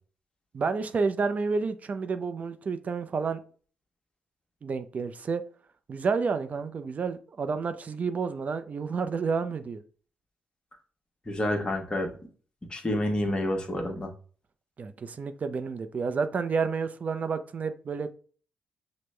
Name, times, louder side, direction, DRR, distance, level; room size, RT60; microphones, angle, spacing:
voice 1, 0.5-3.4 4.6-5.4 5.9-9.8 14.8-18.1, right 5 dB, 45° right, 0.5 m, -30 dB
voice 2, 11.3-12.1 12.7-14.1, left 1 dB, 25° left, 1.1 m, -28 dB
6.0 x 2.1 x 3.2 m
supercardioid pair, 55°, 3 cm